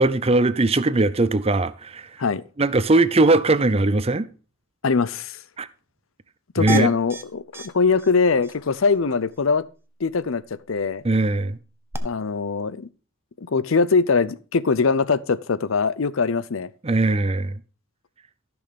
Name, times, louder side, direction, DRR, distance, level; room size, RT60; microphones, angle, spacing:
voice 1, 0.0-2.1 2.6-4.3 5.6-5.7 6.6-6.9 11.0-11.6 16.8-17.6, right 2 dB, 30° right, 0.6 m, -20 dB
voice 2, 4.8-5.4 6.5-9.6 10.0-10.4 10.7-11.0 12.0-12.9 13.4-16.7, left 4 dB, 85° left, 0.7 m, -22 dB
sound 1, 6.7-7.2 7.5-7.7 8.0-8.1 8.4-8.5 11.9-12.0, equal, 10° right, 1.0 m, -29 dB
14.0 x 6.2 x 5.2 m
head